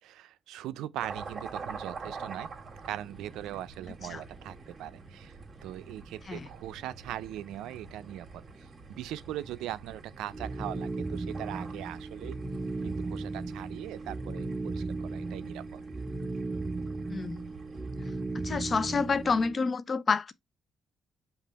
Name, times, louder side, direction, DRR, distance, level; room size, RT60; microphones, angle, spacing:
voice 1, 0.0-2.5 2.8-12.4 12.8-15.8, right 13 dB, 90° right, 0.4 m, -40 dB
sound 1, 1.0-19.5, right 4 dB, 40° right, 1.7 m, -47 dB
sound 2, 10.3-19.6, right 3 dB, 20° right, 0.5 m, -36 dB
voice 2, 17.1-17.4 18.4-20.3, left 4 dB, 40° left, 0.5 m, -28 dB
5.3 x 2.4 x 4.0 m
cardioid pair, 90°, 0 cm